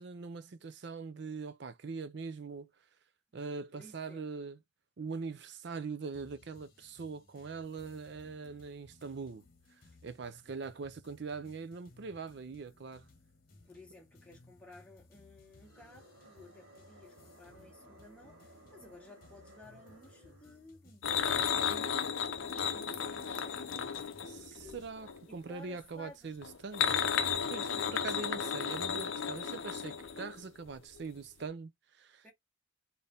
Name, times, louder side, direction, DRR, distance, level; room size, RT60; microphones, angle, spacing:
voice 1, 0.0-2.7 3.3-4.6 5.0-9.4 10.0-13.1 24.2-27.0 27.5-32.3, right 4 dB, 55° right, 0.5 m, -42 dB
voice 2, 3.7-4.3 13.6-22.1 22.4-23.9 24.3-24.8 25.3-26.4 32.2-32.3, left 1 dB, 5° left, 1.3 m, -55 dB
sound 1, 6.1-24.9, left 2 dB, 45° left, 1.2 m, -61 dB
sound 2, 15.4-20.8, right 1 dB, 85° right, 1.1 m, -59 dB
sound 3, 21.0-25.2 26.4-30.7 31.0-31.1 31.4-31.5, left 7 dB, 70° left, 0.6 m, -34 dB
4.1 x 2.7 x 3.4 m
head